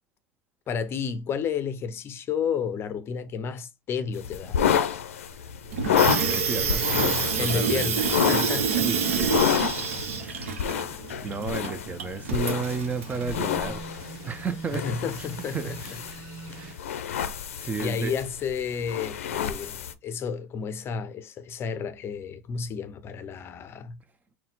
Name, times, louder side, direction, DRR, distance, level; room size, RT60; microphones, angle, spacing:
voice 1, 0.7-4.6 7.3-8.9 14.7-15.8 16.1-16.3 17.8-24.0, left 6 dB, 35° left, 0.5 m, -31 dB
sound 1, 4.1-19.9, left 9 dB, 85° left, 0.5 m, -29 dB
Water tap faucet / Sink (filling or washing), 5.7-13.3, right 6 dB, 80° right, 0.8 m, -28 dB
voice 2, 5.9-6.9 7.4-8.1 8.5-9.5 10.2-10.7 11.2-13.9 14.2-14.8 15.5-16.2 16.5-16.8 17.6-18.1, right 5 dB, 20° right, 0.5 m, -33 dB
sound 2, 13.1-16.8, right 4 dB, 60° right, 1.2 m, -42 dB
4.1 x 2.2 x 3.9 m
hypercardioid pair, 100°, 7 cm